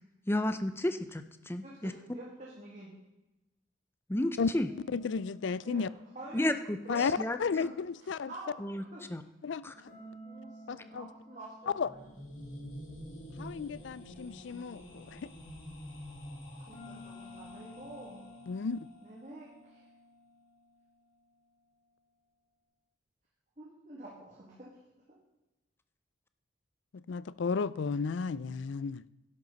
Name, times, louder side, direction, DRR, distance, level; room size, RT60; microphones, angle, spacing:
voice 1, 0.3-1.9 4.1-4.7 6.3-6.8 7.2-7.4 8.6-8.8 9.1-9.2 9.6-9.7, left 1 dB, 10° left, 9 dB, 0.5 m, -31 dB
voice 2, 1.6-2.9 5.6-5.9 6.1-6.5 6.8-7.2 7.6-7.7 8.0-8.6 8.9-9.0 9.6-12.0 16.5-18.2 19.0-19.9 23.6-24.7, right 1 dB, 35° right, -5 dB, 2.3 m, -48 dB
sound 1, 4.5-7.5 9.9-14.4 16.7-21.3, left 1 dB, 35° left, 3.1 m, -54 dB
voice 3, 4.9-5.9 6.9-8.3 9.4-9.6 10.7-11.1 11.8-11.9 13.4-15.2 18.5-18.9 27.1-29.0, left 5 dB, 65° left, 19 dB, 0.4 m, -33 dB
sound 2, 11.8-18.7, equal, 85° left, 2.8 m, -47 dB
12.0 x 11.0 x 4.0 m, 1.0 s
head